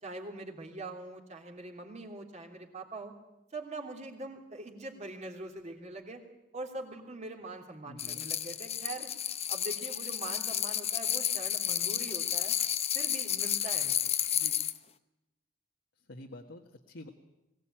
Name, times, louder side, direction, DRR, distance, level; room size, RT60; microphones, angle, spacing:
voice 1, 0.0-3.1 3.5-6.2 6.5-12.6 12.9-14.6, right 2 dB, 40° right, 1 dB, 3.1 m, -43 dB
voice 2, 7.8-8.2 16.1-17.1, left 1 dB, 70° left, 1 dB, 1.5 m, -48 dB
sound 1, 8.0-14.8, left 10 dB, 35° left, 0.8 m, -31 dB
21.0 x 17.5 x 8.9 m, 0.98 s
head